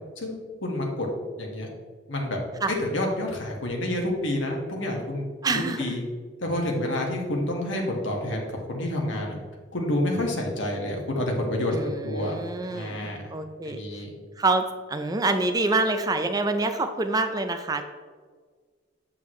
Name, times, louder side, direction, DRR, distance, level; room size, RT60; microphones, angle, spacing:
voice 1, 0.2-1.1 1.4-1.7 2.1-2.4 2.8-5.3 5.5-6.0 6.4-9.4 9.7-12.3 12.7-13.3 13.7-14.1, left 1 dB, 85° left, 0 dB, 1.7 m, -28 dB
voice 2, 5.4-5.9 11.7-14.0 14.4-17.8, right 2 dB, 20° right, 7 dB, 0.5 m, -26 dB
8.0 x 7.2 x 3.2 m, 1.5 s
head